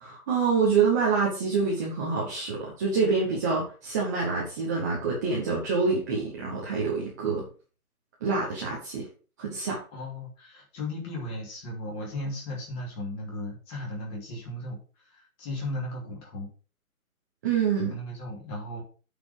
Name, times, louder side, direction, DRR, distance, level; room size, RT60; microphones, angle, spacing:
voice 1, 0.0-7.5 8.2-9.1 9.4-9.8 17.4-18.0, right 5 dB, 10° right, -4 dB, 0.9 m, -26 dB
voice 2, 9.9-16.5 17.9-18.8, left 1 dB, 20° left, -2 dB, 2.9 m, -36 dB
8.6 x 5.1 x 5.7 m, 0.37 s
hypercardioid pair, 165°, 44 cm